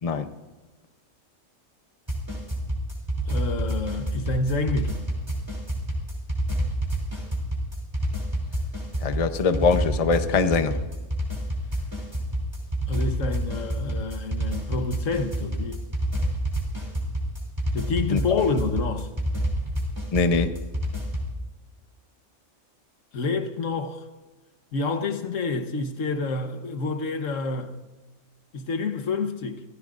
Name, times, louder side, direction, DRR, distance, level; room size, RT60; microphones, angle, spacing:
sound 1, 2.1-21.3, right 1 dB, 20° right, 3.2 m, -28 dB
voice 1, 3.3-5.0 12.9-15.8 17.7-19.1 23.1-24.1 24.7-27.8 28.5-29.6, left 3 dB, 80° left, 1.5 m, -28 dB
voice 2, 9.0-10.8 18.1-18.2 20.1-20.5, left 4 dB, 35° left, 0.7 m, -22 dB
25.5 x 15.5 x 2.5 m
omnidirectional pair, 1.3 m